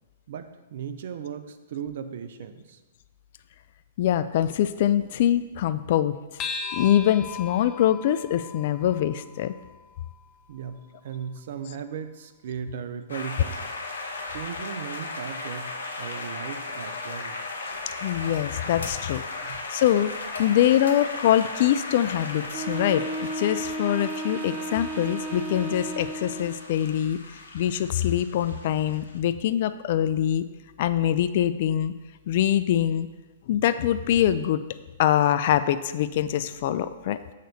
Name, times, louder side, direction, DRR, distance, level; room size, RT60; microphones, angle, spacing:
voice 1, 0.3-2.8 10.5-13.6 14.3-15.7 16.0-17.5 19.4-19.6, right 7 dB, 60° right, 10 dB, 0.6 m, -37 dB
voice 2, 4.0-6.2 6.7-9.5 18.0-23.0 23.3-27.2 27.5-30.4 30.8-31.9 32.3-33.1 33.5-34.6 35.0-37.2, left 11 dB, 55° left, 12 dB, 0.3 m, -24 dB
sound 1, 6.4-11.2, left 5 dB, 25° left, 0.7 m, -39 dB
sound 2, 13.1-29.2, left 3 dB, 80° left, 1.1 m, -37 dB
Wind instrument woodwind instrument, 22.5-26.6, right 2 dB, 30° right, 0.8 m, -33 dB
6.6 x 3.9 x 6.4 m, 1.2 s
hypercardioid pair, 125°, 0 cm